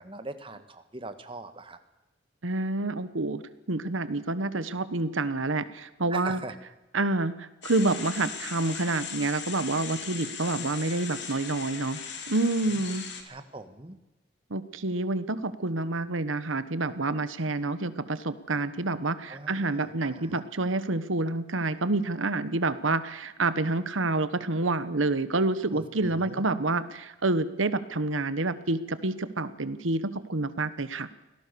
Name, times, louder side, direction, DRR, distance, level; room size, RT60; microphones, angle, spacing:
voice 1, 0.0-1.8 6.1-6.5 12.7-12.8 13.2-14.0 19.3-20.4 25.7-26.4, right 2 dB, 25° right, 9 dB, 1.6 m, -42 dB
voice 2, 2.4-3.4 3.7-6.4 6.9-12.0 12.3-13.0 14.5-31.1, right 2 dB, 90° right, 13 dB, 1.2 m, -28 dB
sound 1, 7.6-13.2, left 6 dB, 65° left, 3.5 m, -38 dB
25.0 x 17.5 x 6.9 m, 1.0 s
head